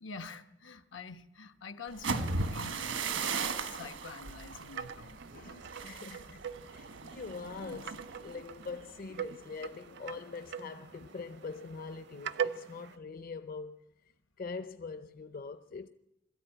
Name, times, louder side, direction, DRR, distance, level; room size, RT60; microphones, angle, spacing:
voice 1, 0.0-5.2, left 4 dB, 85° left, 1.2 m, -46 dB
sound 1, 1.9-9.7 10.1-10.4 10.8-11.2, right 4 dB, 85° right, 1.3 m, -38 dB
sound 2, 4.2-13.0, right 7 dB, 60° right, 0.6 m, -42 dB
voice 2, 5.3-13.8 14.4-15.9, left 4 dB, 50° left, 0.7 m, -43 dB
21.5 x 14.0 x 9.1 m
head